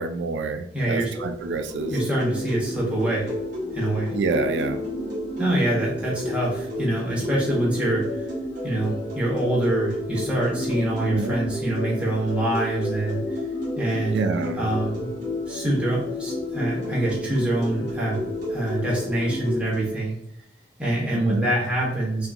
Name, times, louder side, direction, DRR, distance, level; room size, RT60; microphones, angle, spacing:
voice 1, 0.0-1.9 4.1-4.8 11.0-11.4 14.1-14.7 21.1-21.5, right 4 dB, 85° right, 7 dB, 0.4 m, -27 dB
voice 2, 0.7-1.1 1.9-3.3 3.7-4.1 5.4-8.3 8.6-13.4 13.8-15.1 15.5-18.2 18.5-20.2 20.8-22.3, right 1 dB, 5° right, -5 dB, 1.2 m, -25 dB
sound 1, 0.9-20.0, left 1 dB, 45° right, 1.4 m, -35 dB
sound 2, 1.8-19.6, left 1 dB, 20° left, 0.6 m, -32 dB
5.4 x 2.2 x 2.7 m, 0.74 s
head